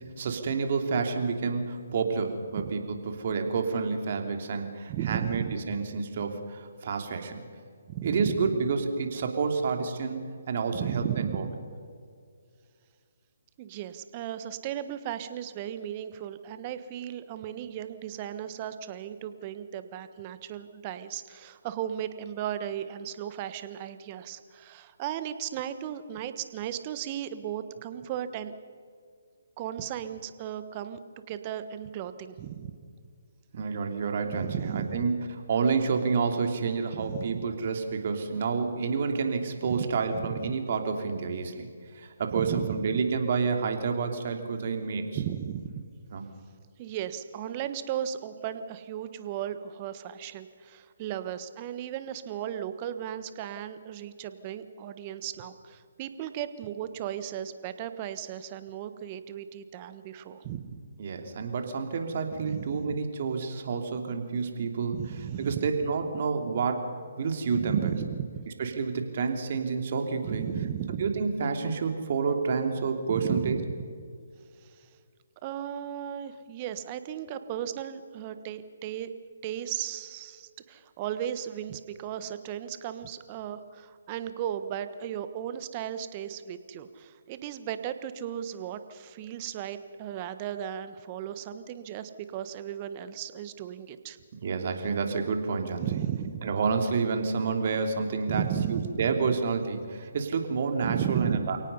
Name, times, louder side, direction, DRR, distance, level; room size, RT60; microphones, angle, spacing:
voice 1, 0.2-7.5 8.0-10.2 10.5-11.4 33.5-35.1 35.5-45.2 46.1-46.2 61.0-65.0 65.4-67.9 68.6-70.5 70.9-73.6 94.4-95.9 96.4-98.4 98.7-101.6, right 5 dB, 50° right, 5 dB, 3.0 m, -29 dB
voice 2, 4.9-5.5 7.9-8.5 10.7-11.5 13.6-28.5 29.6-31.0 31.3-32.7 34.3-35.0 36.9-37.5 39.6-40.5 42.3-43.0 45.1-45.7 46.8-60.8 62.4-63.0 64.9-65.7 67.5-68.2 70.2-71.1 73.1-73.7 74.8-74.9 75.4-79.1 79.4-94.2 95.8-96.5 98.3-99.3 100.8-101.5, right 10 dB, 30° right, 11 dB, 1.3 m, -35 dB
29.0 x 18.0 x 5.6 m, 2.2 s
figure-of-eight pair, 145°, 0 cm